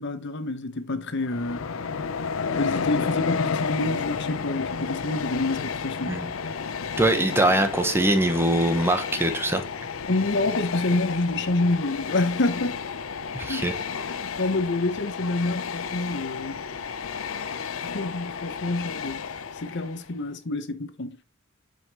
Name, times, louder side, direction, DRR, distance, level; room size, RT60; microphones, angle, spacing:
voice 1, 0.0-1.6 2.5-6.2 10.1-12.8 13.5-13.7 14.1-16.6 17.8-19.2 19.6-21.2, left 2 dB, 60° left, 0.9 m, -27 dB
Train, 1.2-20.1, left 5 dB, 90° left, 0.6 m, -32 dB
voice 2, 7.0-9.6 13.3-14.0, right 1 dB, 10° right, 1.0 m, -23 dB
7.8 x 5.2 x 3.0 m
head